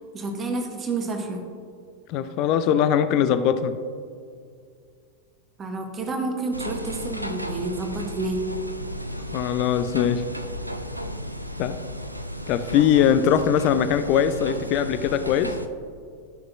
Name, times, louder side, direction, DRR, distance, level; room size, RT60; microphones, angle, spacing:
voice 1, 0.1-1.4 5.6-8.4, right 3 dB, 20° right, 3 dB, 1.1 m, -29 dB
voice 2, 2.1-3.8 9.3-10.3 11.6-11.8 12.5-15.6, left 9 dB, 40° left, 11 dB, 0.4 m, -21 dB
sound 1, 6.5-15.7, equal, 90° right, 0.4 m, -34 dB
12.5 x 6.1 x 2.5 m, 2.2 s
figure-of-eight pair, 90°, 0 cm